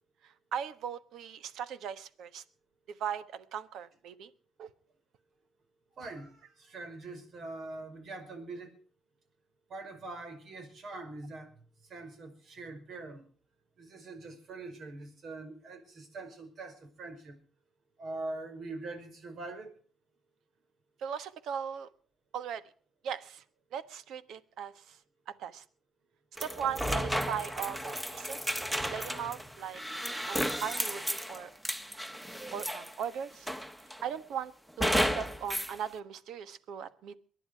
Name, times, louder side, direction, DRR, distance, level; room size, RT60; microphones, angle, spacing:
voice 1, 0.2-2.4 2.9-4.3 4.6-4.7 21.0-21.9 22.3-22.6 23.0-23.4 23.7-25.0 25.3-25.6 26.4-28.6 28.9-29.8 30.3-31.5 32.5-33.5 34.0-34.5 34.8-37.2, right 8 dB, 80° right, 14 dB, 1.3 m, -38 dB
voice 2, 6.0-8.8 9.7-11.5 11.8-13.2 13.8-17.4 18.0-19.7, right 2 dB, 60° right, 8 dB, 5.4 m, -43 dB
sound 1, 26.4-33.0 33.5-34.1 34.8-35.7, equal, 10° right, 1.4 m, -33 dB
23.0 x 10.5 x 4.7 m, 0.43 s
cardioid pair, 90°, 0 cm